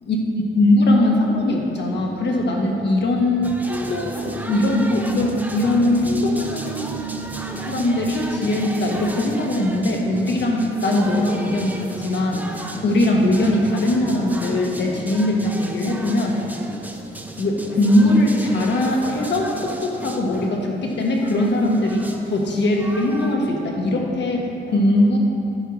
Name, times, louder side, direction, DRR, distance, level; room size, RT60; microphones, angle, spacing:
voice 1, 0.0-6.9 7.6-16.4 17.4-25.2, left 1 dB, 60° left, 0 dB, 1.5 m, -21 dB
sound 1, 3.4-23.4, right 1 dB, 10° right, 0.7 m, -34 dB
sound 2, 4.2-14.9, right 11 dB, 80° right, 1.2 m, -37 dB
11.0 x 4.6 x 6.4 m, 2.8 s
cardioid pair, 100°, 20 cm